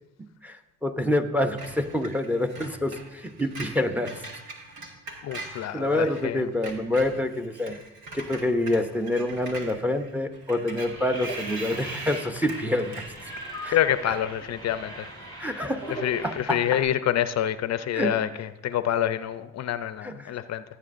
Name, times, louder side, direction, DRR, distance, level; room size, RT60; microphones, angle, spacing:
voice 1, 0.8-4.1 5.7-7.8 8.1-13.0 13.6-13.8 15.4-16.7 17.9-18.2 20.0-20.3, left 1 dB, 5° right, 7 dB, 0.7 m, -27 dB
Screech, 1.6-6.3 6.5-14.0, right 2 dB, 75° right, 1.7 m, -42 dB
voice 2, 5.2-6.5 13.7-15.1 15.9-20.6, left 11 dB, 60° left, 13 dB, 0.5 m, -27 dB
sound 1, 10.8-16.8, right 1 dB, 55° right, 4.2 m, -40 dB
15.0 x 8.5 x 2.5 m, 0.92 s
cardioid pair, 90°, 30 cm